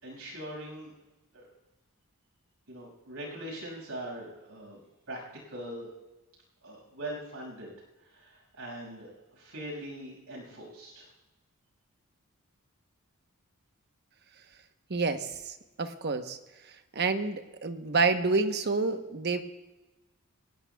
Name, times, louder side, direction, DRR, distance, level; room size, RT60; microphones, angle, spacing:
voice 1, 0.0-0.9 1.3-1.5 2.7-4.8 5.1-5.9 6.6-7.7 8.0-11.1, right 1 dB, 75° right, -1 dB, 6.1 m, -41 dB
voice 2, 14.9-16.4 16.9-19.4, right 3 dB, 50° right, 7 dB, 1.0 m, -28 dB
23.0 x 18.5 x 2.3 m, 1.1 s
head